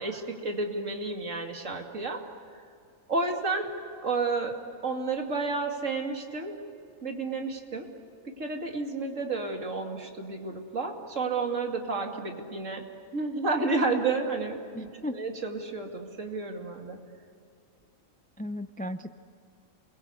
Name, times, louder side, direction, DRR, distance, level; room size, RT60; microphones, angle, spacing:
voice 1, 0.0-2.2 3.1-3.7 4.0-4.5 4.8-6.5 7.0-7.9 8.4-12.8 13.1-17.0, right 3 dB, 65° right, 2 dB, 2.9 m, -31 dB
voice 2, 14.7-15.2 18.4-19.2, left 1 dB, 10° left, 10 dB, 0.3 m, -35 dB
29.0 x 22.0 x 8.2 m, 2.4 s
omnidirectional pair, 1.4 m